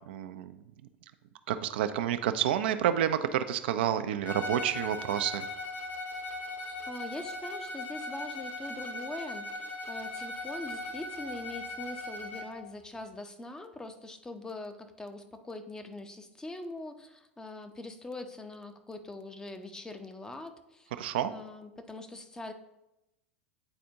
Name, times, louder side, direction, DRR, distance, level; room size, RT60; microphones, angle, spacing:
voice 1, 0.1-0.6 1.5-5.4 21.0-21.3, right 10 dB, 60° right, 9 dB, 0.4 m, -29 dB
Bowed string instrument, 4.2-12.6, left 2 dB, 30° left, 0.9 m, -39 dB
voice 2, 6.4-22.5, left 2 dB, 10° left, 7 dB, 0.6 m, -43 dB
8.8 x 4.1 x 2.7 m, 0.91 s
figure-of-eight pair, 85°, 6 cm